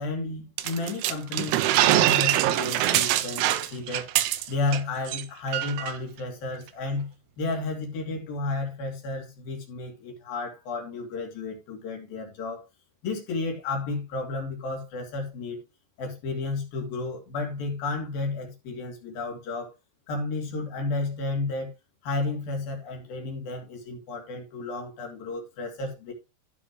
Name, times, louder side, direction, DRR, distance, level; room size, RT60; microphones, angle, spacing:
voice 1, 0.0-4.1 4.5-7.1 7.4-12.6 13.0-15.6 16.0-19.7 20.1-21.7 22.0-26.1, left 3 dB, 55° left, 4.1 m, -32 dB
sound 1, 0.6-4.8 5.1-5.2 5.5-5.9, right 14 dB, 80° right, 3.1 m, -23 dB
15.0 x 6.1 x 3.1 m
omnidirectional pair, 5.6 m